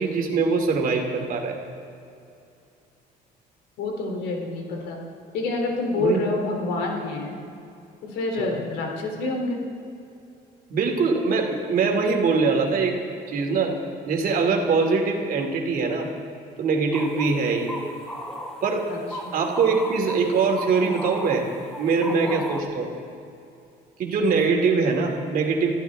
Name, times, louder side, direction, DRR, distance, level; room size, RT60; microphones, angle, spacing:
voice 1, 0.0-1.6 6.0-6.2 8.4-8.6 10.7-13.0 13.3-13.8 14.1-16.1 16.6-17.8 18.6-18.9 19.3-21.5 21.8-22.9 24.0-25.8, right 4 dB, 60° right, 2 dB, 2.9 m, -23 dB
voice 2, 3.8-5.0 5.3-7.4 8.0-9.6 18.9-19.0 19.2-19.3 22.0-22.4, left 2 dB, 90° left, 1 dB, 3.4 m, -27 dB
sound 1, 16.9-22.6, equal, 5° left, 1.6 m, -36 dB
25.0 x 14.5 x 3.7 m, 2.6 s
cardioid pair, 110°, 17 cm